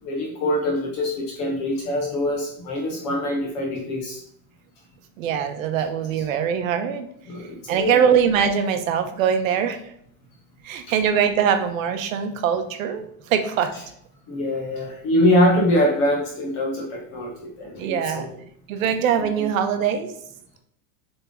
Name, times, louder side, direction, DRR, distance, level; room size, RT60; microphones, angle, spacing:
voice 1, 0.0-4.2 7.3-8.1 14.3-18.3 19.3-19.5, left 1 dB, 20° left, 0 dB, 0.4 m, -23 dB
voice 2, 5.2-7.1 7.7-9.8 10.6-13.7 17.8-18.3 18.7-20.1, right 8 dB, 60° right, 8 dB, 0.9 m, -22 dB
7.1 x 3.6 x 3.6 m, 0.70 s
supercardioid pair, 175°, 45 cm